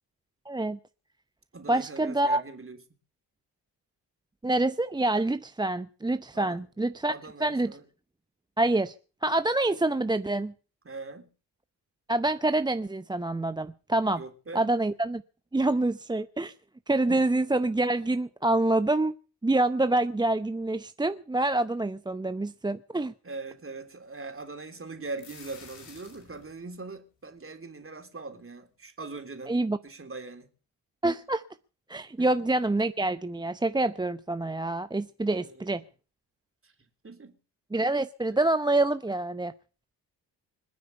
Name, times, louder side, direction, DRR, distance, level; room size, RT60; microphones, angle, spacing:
voice 1, 0.5-0.8 1.7-2.4 4.4-7.1 7.4-7.8 8.6-8.9 9.2-10.5 12.1-14.2 14.5-15.2 15.5-16.5 16.9-19.1 19.4-23.1 29.5-29.8 31.0-31.4 31.9-35.8 37.7-39.5, right 2 dB, 10° right, 0.7 m, -26 dB
voice 2, 1.5-2.8 6.3-6.6 7.0-7.8 10.9-11.3 14.2-14.7 17.1-17.3 23.2-29.6 29.8-30.5 32.2-32.5 35.2-35.8 36.6-36.7 37.0-37.4, right 3 dB, 25° right, 3.4 m, -41 dB
sound 1, 24.9-26.6, left 6 dB, 65° left, 5.6 m, -50 dB
25.5 x 9.4 x 5.5 m
hypercardioid pair, 45°, 49 cm